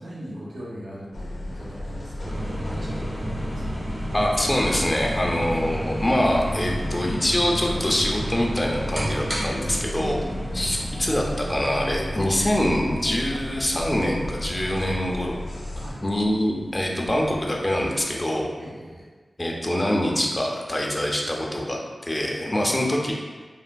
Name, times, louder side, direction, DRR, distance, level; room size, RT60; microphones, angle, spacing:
voice 1, 0.0-3.9 9.9-10.6 15.7-16.0 18.6-19.1 22.4-22.7, equal, 75° right, -6 dB, 0.8 m, -39 dB
sound 1, 1.1-15.9, left 1 dB, 70° left, 0.6 m, -34 dB
sound 2, 2.2-18.2, right 1 dB, 50° right, 1.0 m, -34 dB
voice 2, 4.1-10.2 10.5-15.5 16.0-18.5 19.4-23.1, left 1 dB, 20° left, -1 dB, 0.4 m, -24 dB
3.3 x 2.4 x 2.2 m, 1.4 s
wide cardioid pair, 85°, 0 cm